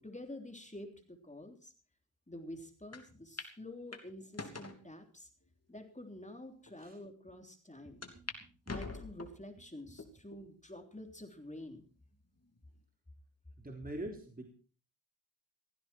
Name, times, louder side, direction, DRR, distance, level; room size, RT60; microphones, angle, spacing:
voice 1, 0.0-1.7 2.3-5.3 5.7-8.0 8.7-11.9, left 1 dB, 15° left, 5 dB, 3.4 m, -48 dB
sound 1, 2.9-3.0 3.4-3.5 3.9-4.8 5.5-5.6 6.3-6.4 6.7-6.8 8.0-8.4 8.7-9.4 10.0-10.4 11.0-11.1 12.2-12.6, left 3 dB, 35° left, 3.1 m, -44 dB
voice 2, 7.8-8.8 9.9-10.0 13.6-14.5, right 1 dB, 20° right, 2 dB, 3.6 m, -45 dB
16.0 x 15.5 x 4.5 m, 0.40 s
cardioid pair, 75°, 46 cm